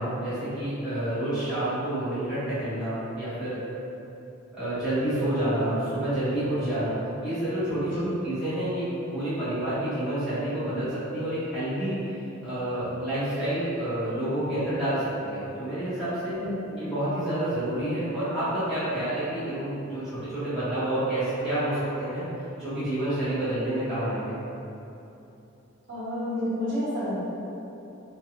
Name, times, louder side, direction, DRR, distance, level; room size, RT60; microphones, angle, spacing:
voice 1, 0.0-3.6 4.5-6.9 7.2-12.0 12.4-16.4 16.8-22.3 22.6-24.4, right 1 dB, ahead, -17 dB, 1.3 m, -28 dB
voice 2, 16.3-16.8 25.9-27.2, left 1 dB, 55° right, -11 dB, 0.9 m, -30 dB
3.1 x 2.4 x 2.9 m, 2.9 s
head